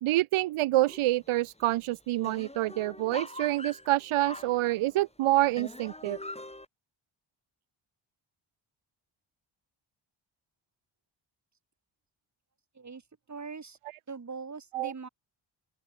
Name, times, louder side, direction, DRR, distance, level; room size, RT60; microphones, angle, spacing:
voice 1, 0.0-6.2 14.7-14.9, right 16 dB, 80° right, 0.6 m, -27 dB
sound 1, 0.8-1.3 1.6-1.7 1.9-5.1 5.6-6.6, left 1 dB, 10° left, 6.6 m, -43 dB
voice 2, 13.3-13.8 14.1-15.1, right 5 dB, 35° right, 2.6 m, -41 dB
open air
cardioid pair, 90°, 50 cm